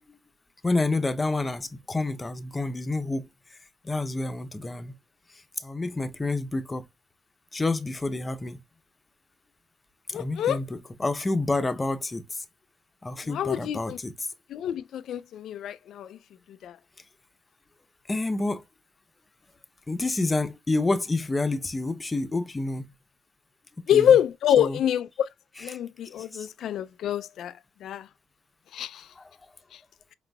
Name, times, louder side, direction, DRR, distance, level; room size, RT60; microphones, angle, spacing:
voice 1, 0.6-3.3 3.8-4.9 5.6-6.8 7.5-8.6 10.1-12.4 13.0-14.3 18.1-18.6 19.9-22.9 23.9-24.2 24.6-24.8 25.5-25.8 26.3-26.5 29.2-29.3, left 2 dB, 20° left, 0.7 m, -28 dB
voice 2, 10.1-10.6 13.3-14.0 14.5-16.1 16.6-16.7 23.9-25.1 25.6-27.5 27.8-28.0 28.7-28.9, left 9 dB, 70° left, 0.3 m, -25 dB
5.4 x 3.9 x 2.3 m
cardioid pair, 90°, 0 cm